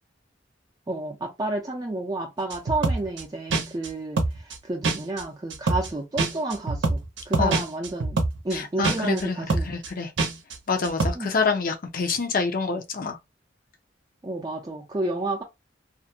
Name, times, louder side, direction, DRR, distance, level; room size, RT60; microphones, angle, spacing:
voice 1, 0.9-8.2 8.4-9.7 11.1-11.3 14.2-15.4, right 2 dB, 20° right, 0.5 m, -30 dB
sound 1, 2.5-3.2 3.5-3.9 4.2-4.6 4.8-5.2 5.5-5.9 6.2-8.6 8.8-9.2 9.5-9.9 10.2-10.6 10.8-11.1, right 3 dB, 75° right, 0.6 m, -25 dB
voice 2, 8.5-10.1 10.7-13.2, left 4 dB, 50° left, 0.6 m, -27 dB
2.5 x 2.1 x 2.7 m
head